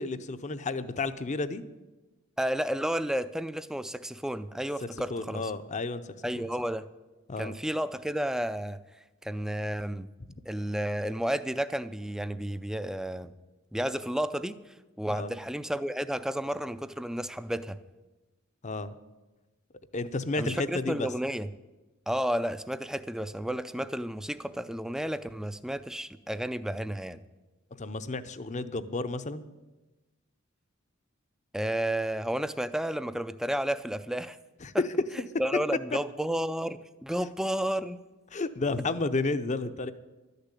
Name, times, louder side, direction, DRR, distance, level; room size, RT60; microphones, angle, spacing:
voice 1, 0.0-1.6 5.1-6.5 7.3-7.6 15.1-15.3 18.6-18.9 19.9-21.1 27.8-29.4 34.6-34.9 38.3-39.9, left 3 dB, 35° left, 12 dB, 0.6 m, -32 dB
voice 2, 2.4-5.5 6.2-6.8 7.4-8.8 9.2-10.1 10.5-13.3 13.7-14.6 15.0-17.8 20.4-21.5 22.1-27.2 31.5-34.4 35.4-38.0, right 1 dB, 5° right, 13 dB, 0.4 m, -32 dB
12.5 x 6.7 x 9.8 m, 1.1 s
head